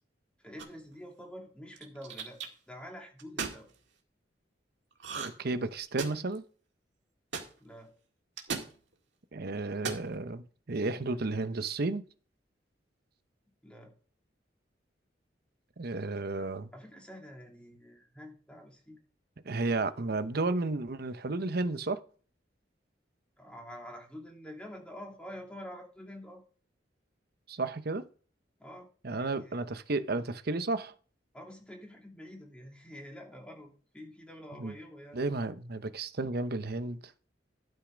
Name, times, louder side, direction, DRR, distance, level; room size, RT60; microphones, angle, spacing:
voice 1, 0.4-2.4 2.7-3.7 7.6-7.9 13.6-13.9 16.7-19.0 23.4-26.4 28.6-29.6 31.3-35.2, equal, 5° left, 2.7 m, -47 dB
sound 1, 0.6-0.9 1.8-2.5 3.2-3.6 5.0-5.5 5.7-6.4 7.3-7.5 8.4-8.7 9.7-10.1, right 5 dB, 75° right, 1.9 m, -36 dB
voice 2, 5.2-6.4 9.3-12.0 15.8-16.7 19.4-22.0 27.5-28.1 29.0-30.9 34.6-34.7 35.1-37.0, right 3 dB, 55° right, 0.8 m, -32 dB
12.0 x 5.6 x 5.1 m
head